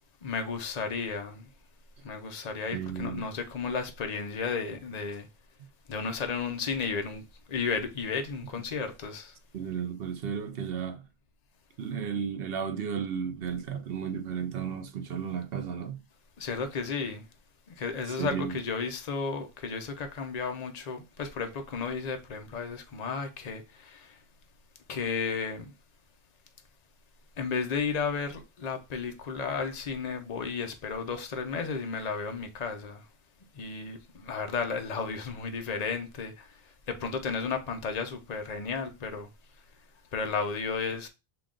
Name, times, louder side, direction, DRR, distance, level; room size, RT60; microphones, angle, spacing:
voice 1, 0.2-1.5 2.0-5.3 5.9-7.2 7.5-9.3 16.4-17.2 17.8-24.1 24.9-25.7 27.4-33.0 33.6-36.5 36.9-39.3 40.1-41.1, left 5 dB, 45° left, 0.7 m, -33 dB
voice 2, 2.7-3.2 9.5-11.0 11.8-16.0 18.1-18.6, right 7 dB, 70° right, 0.9 m, -34 dB
5.8 x 2.4 x 3.7 m
omnidirectional pair, 1.0 m